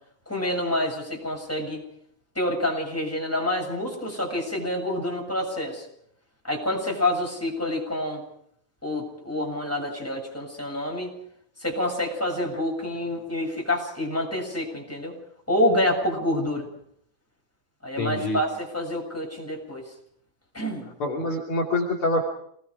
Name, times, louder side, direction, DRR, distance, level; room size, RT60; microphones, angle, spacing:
voice 1, 0.3-1.9 2.4-5.8 6.4-8.2 8.8-11.1 11.6-15.2 15.5-16.7 17.8-19.8 20.5-20.9, left 1 dB, 5° left, -1 dB, 7.5 m, -27 dB
voice 2, 18.0-18.4 21.0-22.2, left 2 dB, 45° left, -3 dB, 3.7 m, -25 dB
28.5 x 20.5 x 5.0 m, 0.69 s
omnidirectional pair, 3.5 m